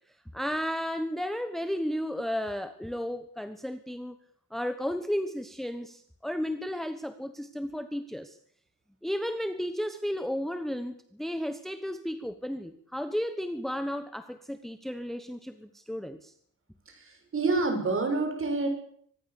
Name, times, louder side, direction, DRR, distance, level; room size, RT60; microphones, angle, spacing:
voice 1, 0.3-4.2 4.5-8.4 9.0-16.3, equal, ahead, 10 dB, 1.1 m, -33 dB
voice 2, 16.9-18.7, right 3 dB, 35° right, 5 dB, 7.1 m, -28 dB
24.5 x 20.5 x 7.0 m, 0.63 s
wide cardioid pair, 165°, 35 cm